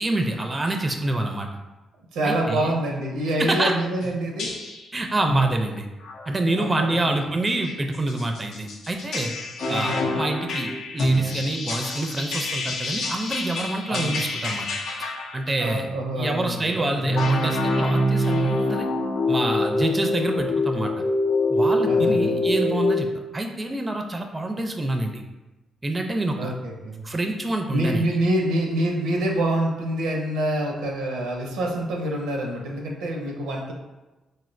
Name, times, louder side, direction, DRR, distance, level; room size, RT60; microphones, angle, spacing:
voice 1, 0.0-1.5 2.2-2.7 3.4-3.7 4.9-5.9 6.3-9.3 9.7-14.7 15.3-15.9 16.2-18.9 19.3-20.9 21.5-23.1 23.3-25.2 25.8-26.5 27.0-28.1, right 2 dB, 25° right, 4 dB, 0.4 m, -27 dB
voice 2, 2.1-4.5 6.6-7.1 9.6-10.2 13.9-14.2 15.6-17.1 21.9-22.5 26.4-27.0 27.7-33.7, right 1 dB, 80° right, 0 dB, 0.5 m, -26 dB
sound 1, 4.0-4.1 4.4-4.9 5.3-5.5 6.0-6.2 6.7-7.0 7.6-15.6 17.0-23.0, left 1 dB, 70° left, 0.5 m, -25 dB
4.0 x 2.1 x 2.5 m, 1.1 s
hypercardioid pair, 50°, 0 cm